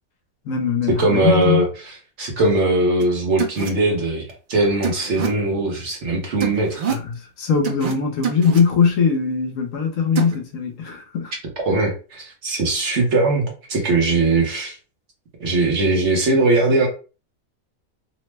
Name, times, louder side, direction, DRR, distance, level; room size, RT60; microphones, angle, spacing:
voice 1, 0.5-1.6 6.9-11.3, left 6 dB, 70° left, 0.9 m, -21 dB
voice 2, 1.0-6.8 11.6-14.8 15.4-16.9, right 2 dB, 55° right, 1.0 m, -20 dB
sound 1, 3.0-3.1 3.4-3.7 4.8-5.3 6.4-7.0 7.6-7.9 8.2-8.6 10.2-10.4, right 7 dB, 75° right, 0.4 m, -25 dB
2.8 x 2.0 x 3.2 m
omnidirectional pair, 1.6 m